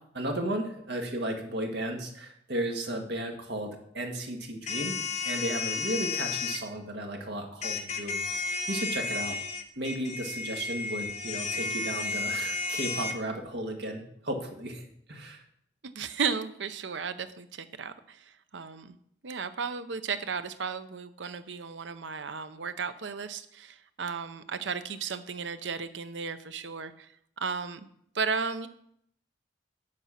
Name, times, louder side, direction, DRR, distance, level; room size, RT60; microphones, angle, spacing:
voice 1, 0.1-5.0 5.2-8.4 8.7-9.4 9.7-15.4, right 1 dB, 65° right, 2 dB, 1.8 m, -34 dB
sound 1, 4.7-6.6 7.6-13.1, left 4 dB, 40° left, 1.1 m, -32 dB
voice 2, 15.8-18.2 18.5-18.9 19.2-27.1 27.4-27.9 28.1-28.7, right 5 dB, 85° right, 11 dB, 0.7 m, -34 dB
8.0 x 7.5 x 5.8 m, 0.69 s
head